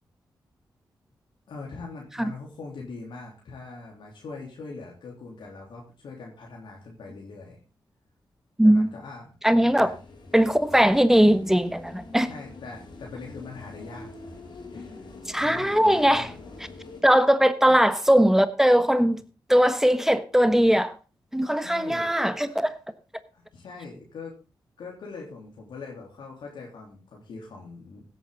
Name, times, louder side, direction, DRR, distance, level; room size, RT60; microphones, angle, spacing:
voice 1, 1.5-7.6 8.6-9.3 9.8-9.9 12.3-14.1 14.7-15.1 15.4-16.4 17.7-17.8 21.6-22.7 23.3-24.3 24.8-28.0, left 4 dB, 90° left, 3.4 m, -42 dB
voice 2, 8.6-8.9 9.4-9.9 10.3-12.3 15.3-16.3 17.0-19.2 19.5-20.9 21.3-22.7, equal, 5° right, 1.2 m, -20 dB
sound 1, 9.7-17.0, left 3 dB, 70° left, 4.9 m, -45 dB
16.5 x 9.1 x 3.9 m
cardioid pair, 75°, 8 cm